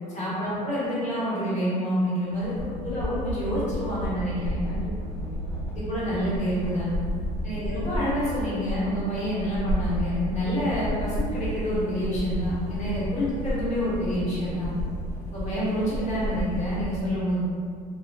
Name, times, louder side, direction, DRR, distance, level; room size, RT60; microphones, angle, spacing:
voice 1, 0.1-4.6 5.7-6.9 7.4-14.7 15.3-17.4, equal, 35° left, -9 dB, 1.3 m, -28 dB
sound 1, 2.3-16.8, equal, 75° left, 0.8 m, -32 dB
voice 2, 2.4-2.7 4.7-5.6 7.1-7.3 12.8-12.9, left 1 dB, 55° left, -12 dB, 1.1 m, -42 dB
3.0 x 2.3 x 2.2 m, 2.2 s
hypercardioid pair, 65°, 20 cm